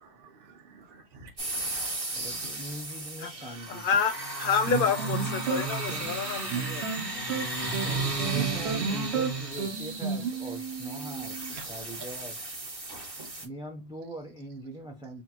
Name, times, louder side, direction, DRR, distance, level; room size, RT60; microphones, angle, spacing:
voice 1, 0.0-2.6 4.1-4.2 12.0-12.1 12.8-13.4, right 3 dB, 55° right, 1.2 m, -52 dB
sound 1, 1.4-13.4, right 3 dB, 30° right, 1.3 m, -35 dB
voice 2, 2.1-3.9 5.5-6.2 7.8-11.4 11.7-12.3 13.4-15.2, right 1 dB, 5° right, 0.4 m, -42 dB
voice 3, 3.2-4.1 4.4-6.8, left 6 dB, 60° left, 0.7 m, -29 dB
sound 2, 4.7-11.7, right 5 dB, 80° right, 1.1 m, -33 dB
sound 3, 7.5-10.1, left 7 dB, 85° left, 1.0 m, -45 dB
6.0 x 2.1 x 2.8 m
omnidirectional pair, 1.1 m